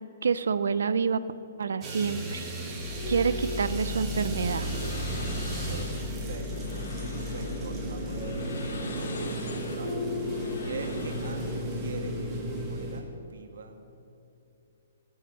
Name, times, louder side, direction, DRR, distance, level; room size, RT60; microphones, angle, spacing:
voice 1, 0.2-1.2 1.6-2.5 3.1-4.7, right 5 dB, 80° right, 15 dB, 0.5 m, -27 dB
sound 1, 1.8-13.0, right 1 dB, 10° right, 1.2 m, -34 dB
sound 2, 2.8-10.8, left 4 dB, 30° left, 2.6 m, -37 dB
voice 2, 3.1-3.5 3.9-4.1 5.7-10.0 10.6-13.8, right 4 dB, 65° right, 5 dB, 1.3 m, -43 dB
sound 3, 3.4-11.8, left 3 dB, 65° left, 1.6 m, -45 dB
16.0 x 5.6 x 7.9 m, 2.8 s
hypercardioid pair, 180°, 0 cm